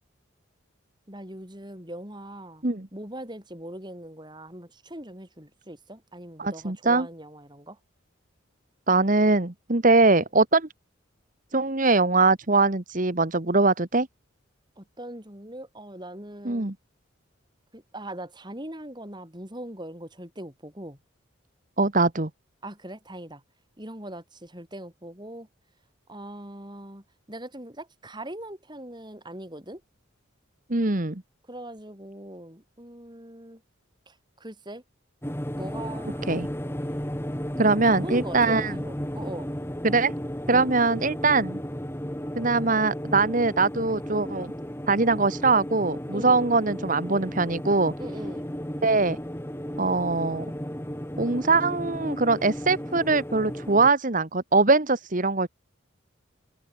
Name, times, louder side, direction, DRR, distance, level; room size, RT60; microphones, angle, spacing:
voice 1, 1.1-2.6 2.9-7.8 14.8-16.7 17.7-21.0 22.6-23.4 23.8-25.5 26.1-29.8 31.5-33.6 34.1-34.8 35.6-36.3 37.6-39.5 40.5-40.7 46.1-46.4 48.0-48.5, right 1 dB, 20° right, 7.0 m, -41 dB
voice 2, 6.4-7.1 8.9-10.7 11.5-14.1 16.4-16.7 21.8-22.3 30.7-31.2 36.3-36.5 37.6-38.7 39.8-40.1 40.5-41.6 42.3-44.5 44.9-47.9 48.8-49.2 49.8-50.4 51.2-55.5, right 3 dB, 40° right, 1.4 m, -22 dB
sound 1, 35.2-53.9, equal, 10° left, 3.0 m, -34 dB
head